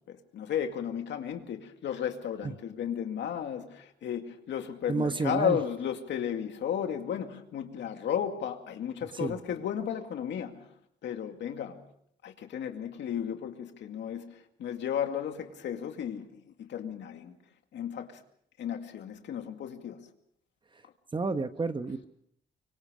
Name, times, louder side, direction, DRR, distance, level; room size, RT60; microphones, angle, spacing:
voice 1, 0.1-10.7 11.0-11.8 12.2-17.3 17.7-18.2 18.6-20.1, left 9 dB, 75° left, 2.3 m, -34 dB
voice 2, 4.9-5.6 9.1-9.4 21.1-22.1, right 4 dB, 25° right, 1.2 m, -30 dB
25.0 x 24.0 x 5.1 m
cardioid pair, 110°, 18 cm